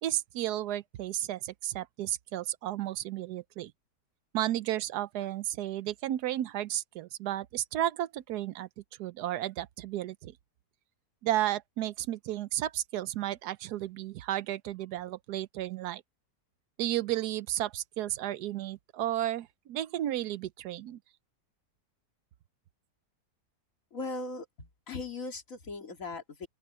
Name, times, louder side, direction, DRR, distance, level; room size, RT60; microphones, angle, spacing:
voice 1, 0.0-3.7 4.3-8.7 9.0-10.4 11.2-16.0 16.8-21.0, right 13 dB, 75° right, 1.2 m, -33 dB
voice 2, 23.9-26.5, left 3 dB, 50° left, 2.8 m, -39 dB
open air
omnidirectional pair, 1.8 m